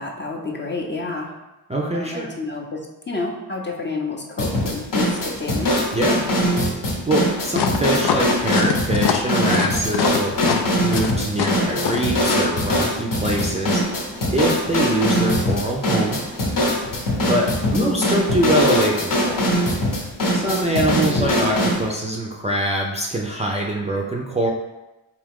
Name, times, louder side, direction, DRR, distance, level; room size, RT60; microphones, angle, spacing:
voice 1, 0.0-1.3 1.9-5.8 17.6-18.0 21.0-21.5, left 3 dB, 25° left, 0 dB, 0.7 m, -29 dB
voice 2, 1.7-2.3 5.9-6.3 7.1-10.4 10.8-13.8 14.3-16.2 17.3-19.5 20.3-24.5, right 1 dB, 15° right, -2 dB, 0.5 m, -23 dB
sound 1, 4.4-21.8, equal, 55° left, 0.9 m, -22 dB
sound 2, 7.5-12.5, left 8 dB, 70° left, 0.5 m, -23 dB
3.6 x 2.8 x 3.6 m, 1.0 s
cardioid pair, 75°, 41 cm